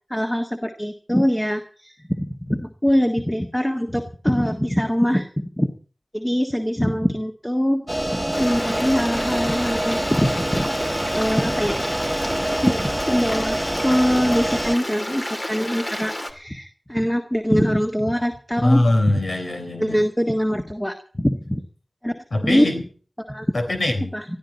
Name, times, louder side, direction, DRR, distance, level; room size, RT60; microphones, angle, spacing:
voice 1, 0.1-5.3 5.6-5.7 6.1-7.8 8.1-10.7 11.1-11.8 12.6-18.8 19.1-19.2 19.8-21.6 22.0-22.1 22.4-22.7 23.3-23.5 24.1-24.2, equal, 10° left, 4 dB, 1.6 m, -23 dB
sound 1, 7.9-14.8, right 1 dB, 15° right, 1.0 m, -26 dB
Stream, 8.3-16.3, left 1 dB, 40° left, 2.5 m, -31 dB
voice 2, 18.6-20.0 22.3-22.8 23.5-24.1, left 1 dB, 80° left, 3 dB, 3.8 m, -22 dB
20.0 x 13.5 x 4.2 m, 0.43 s
cardioid pair, 40°, 0 cm